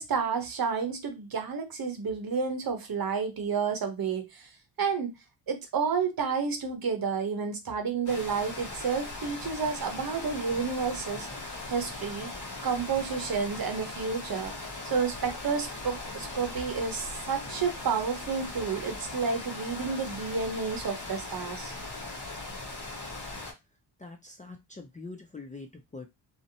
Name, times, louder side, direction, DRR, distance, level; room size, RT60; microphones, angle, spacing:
voice 1, 0.0-4.5 4.8-5.1 5.5-12.3 12.6-14.5 14.8-21.7, right 5 dB, 50° right, 0.8 m, -30 dB
sound 1, 8.1-23.5, left 2 dB, 40° left, 1.2 m, -39 dB
voice 2, 24.0-26.1, left 3 dB, 15° left, 0.4 m, -44 dB
2.7 x 2.1 x 2.6 m
cardioid pair, 60°, 46 cm